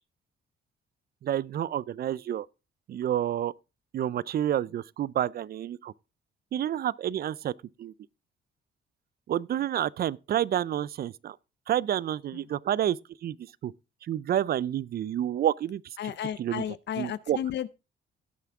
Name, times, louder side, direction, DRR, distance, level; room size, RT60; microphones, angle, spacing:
voice 1, 1.2-2.5 2.9-3.5 3.9-5.9 6.5-7.5 7.8-7.9 9.3-11.4 11.7-13.0 13.2-13.7 14.1-15.8 16.4-16.6 17.0-17.4, right 11 dB, 50° right, 0.4 m, -29 dB
voice 2, 16.0-17.7, left 10 dB, 60° left, 0.6 m, -33 dB
17.0 x 5.8 x 3.5 m
cardioid pair, 90°, 20 cm